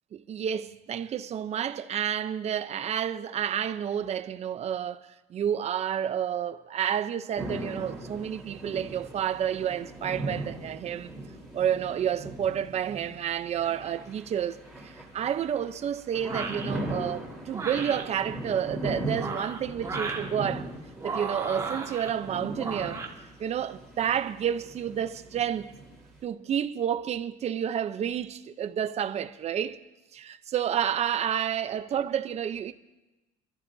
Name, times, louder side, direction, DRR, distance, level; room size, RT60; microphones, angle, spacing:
voice 1, 0.1-5.0 5.3-11.1 11.5-20.7 21.0-23.0 23.4-25.7 26.2-29.8 30.1-32.7, right 9 dB, 40° right, 0.7 m, -30 dB
sound 1, 7.3-26.2, right 1 dB, ahead, 3.9 m, -39 dB
sound 2, 16.2-16.7 17.5-18.0 19.0-20.3 21.0-22.1 22.6-23.1, right 4 dB, 20° right, 1.7 m, -35 dB
23.5 x 14.0 x 2.7 m
cardioid pair, 135°, 17 cm